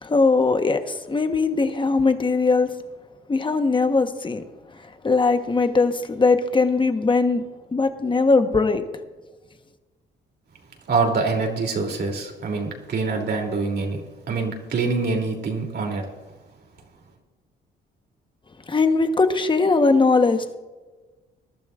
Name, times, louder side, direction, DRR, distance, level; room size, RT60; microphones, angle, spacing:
voice 1, 0.0-2.7 3.3-4.4 5.0-7.4 7.7-8.8 18.7-20.6, left 3 dB, 25° left, 1.2 m, -20 dB
voice 2, 10.9-14.0 14.3-16.1, right 4 dB, 55° right, 3.1 m, -25 dB
21.5 x 12.0 x 2.5 m
cardioid pair, 90°, 20 cm